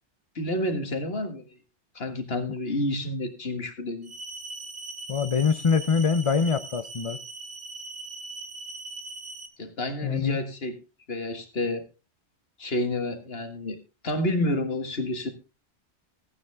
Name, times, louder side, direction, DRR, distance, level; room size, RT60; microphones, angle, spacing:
voice 1, 0.4-1.6 2.0-4.1 9.6-10.8 11.1-11.8 12.6-13.8 14.0-15.3, left 1 dB, 60° left, 1.9 m, -29 dB
sound 1, 4.0-9.5, right 3 dB, 80° right, 1.8 m, -40 dB
voice 2, 5.1-7.2 10.0-10.4, left 6 dB, 35° left, 0.6 m, -24 dB
15.0 x 9.4 x 3.5 m
omnidirectional pair, 1.2 m